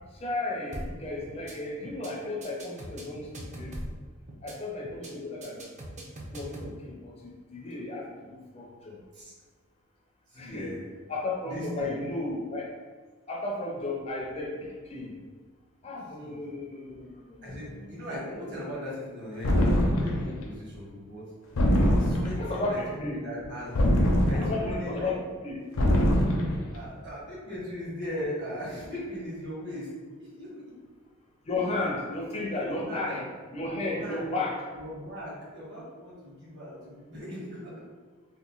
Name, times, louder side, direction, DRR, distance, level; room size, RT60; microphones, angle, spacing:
voice 1, 0.2-4.0 4.4-5.6 6.3-9.0 10.4-10.7 11.1-12.7 13.3-15.1 15.8-17.9 22.4-23.2 24.3-25.2 25.4-25.6 31.5-33.3 33.5-34.7, left 2 dB, 30° left, -1 dB, 0.4 m, -34 dB
sound 1, 0.7-1.0 1.3-1.5 1.8-2.1 2.4-4.0 4.3-4.5 4.8-5.1 5.4-6.7, right 1 dB, 35° right, 0.4 m, -40 dB
voice 2, 10.3-10.8 11.4-11.9 16.2-16.4 17.4-21.2 21.8-23.7 24.2-25.1 26.7-29.9 30.2-30.6 31.5-31.8 32.2-32.3 32.6-33.2 33.8-34.4 34.7-37.7, left 1 dB, 55° right, -7 dB, 1.3 m, -38 dB
sound 2, 19.4-20.3 21.6-22.5 23.7-24.8 25.8-26.6, equal, 75° left, 0.5 m, -23 dB
2.9 x 2.2 x 3.7 m, 1.4 s
head